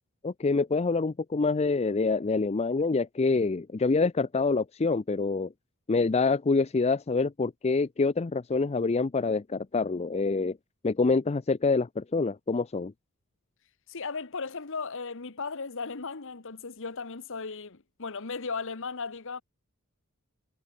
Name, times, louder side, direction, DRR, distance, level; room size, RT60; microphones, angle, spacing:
voice 1, 0.2-5.5 5.9-10.6 10.8-12.9, left 4 dB, 30° left, 0.5 m, -26 dB
voice 2, 13.9-19.4, left 4 dB, 60° left, 1.3 m, -36 dB
head